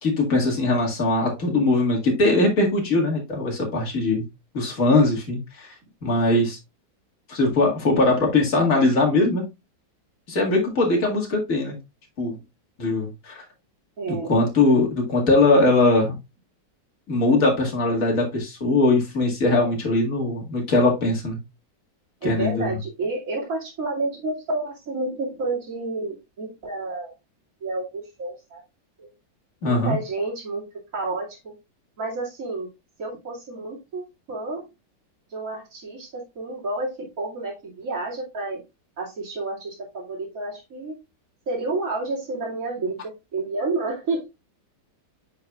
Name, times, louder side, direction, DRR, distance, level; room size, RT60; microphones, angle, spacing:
voice 1, 0.0-4.3 4.5-5.7 6.0-6.6 7.3-9.4 10.3-11.8 12.2-12.4 12.8-13.4 14.1-16.2 17.1-21.4 22.2-22.7 29.6-30.0, left 2 dB, 50° left, -1 dB, 2.5 m, -21 dB
voice 2, 14.0-14.3 22.2-27.1 27.6-28.6 29.0-29.1 29.7-30.6 30.9-31.5 32.0-32.7 33.0-34.6 35.3-38.6 39.0-40.9 41.5-44.3, right 2 dB, 50° right, -5 dB, 2.8 m, -30 dB
8.8 x 5.5 x 2.4 m, 0.23 s
omnidirectional pair, 1.9 m